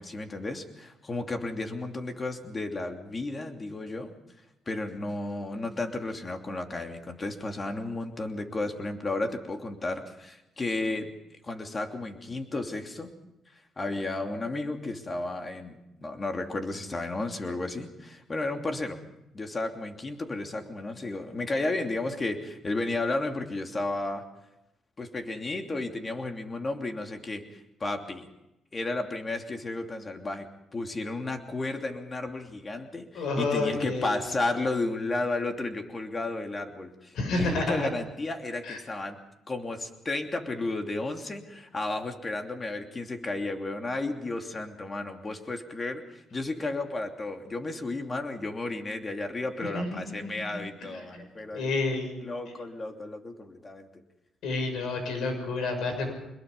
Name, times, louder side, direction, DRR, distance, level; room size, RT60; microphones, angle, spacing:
voice 1, 0.0-4.1 4.7-11.1 11.4-13.1 13.8-19.0 19.3-24.3 25.0-28.3 28.7-30.5 30.7-39.2 39.5-51.7 52.2-54.0, left 2 dB, 30° left, 4 dB, 3.0 m, -33 dB
voice 2, 33.1-34.2 37.1-37.9 38.6-38.8 49.7-50.6 50.9-51.2 51.5-52.1 54.4-56.1, left 3 dB, 80° left, 6 dB, 6.6 m, -30 dB
24.0 x 21.5 x 5.5 m, 0.91 s
cardioid pair, 90°, 0 cm